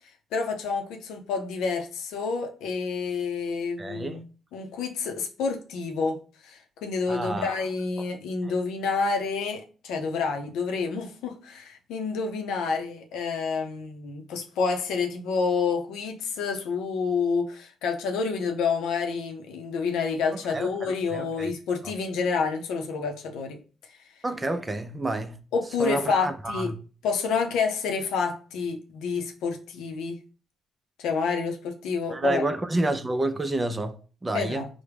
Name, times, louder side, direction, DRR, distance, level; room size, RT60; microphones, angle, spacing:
voice 1, 0.3-4.2 4.5-6.2 6.4-23.6 25.5-26.7 27.0-30.2 31.0-32.4 34.3-34.7, left 5 dB, 90° left, 0.6 m, -28 dB
voice 2, 3.8-4.2 7.1-7.6 8.4-8.5 20.3-21.5 21.8-21.9 24.2-25.4 25.8-26.7 32.1-34.7, right 2 dB, 20° right, 0.5 m, -29 dB
4.6 x 2.1 x 3.3 m
cardioid pair, 90°, 0 cm